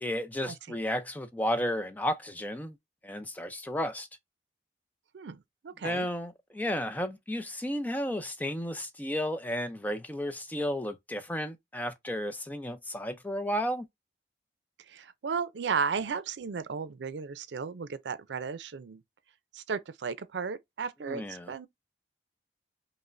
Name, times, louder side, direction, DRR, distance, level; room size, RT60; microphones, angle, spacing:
voice 1, 0.0-2.8 3.0-4.1 5.8-13.9 21.1-21.5, equal, 10° left, 0.4 m, -33 dB
voice 2, 5.1-6.1 14.9-19.0 19.5-21.7, right 5 dB, 90° right, 0.5 m, -34 dB
5.3 x 2.1 x 2.5 m
head